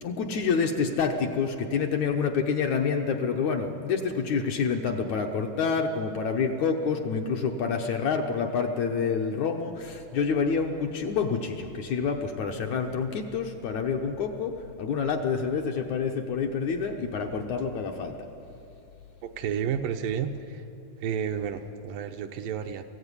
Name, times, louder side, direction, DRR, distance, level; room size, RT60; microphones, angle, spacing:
voice 1, 0.0-18.2, left 5 dB, 70° left, 3 dB, 2.0 m, -28 dB
voice 2, 19.2-20.6 21.0-22.8, right 8 dB, 75° right, 6 dB, 2.4 m, -31 dB
21.5 x 16.0 x 9.8 m, 2.8 s
omnidirectional pair, 4.1 m